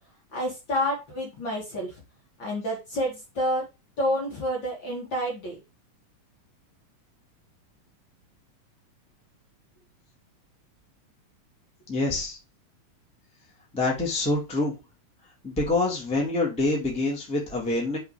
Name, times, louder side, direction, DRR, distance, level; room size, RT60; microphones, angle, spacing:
voice 1, 0.3-2.0 2.4-3.6 4.0-5.6, equal, 40° left, -2 dB, 2.3 m, -29 dB
voice 2, 11.9-12.4 13.7-14.7 15.4-18.0, left 2 dB, ahead, -2 dB, 1.6 m, -26 dB
5.8 x 4.8 x 4.9 m, 0.26 s
omnidirectional pair, 3.9 m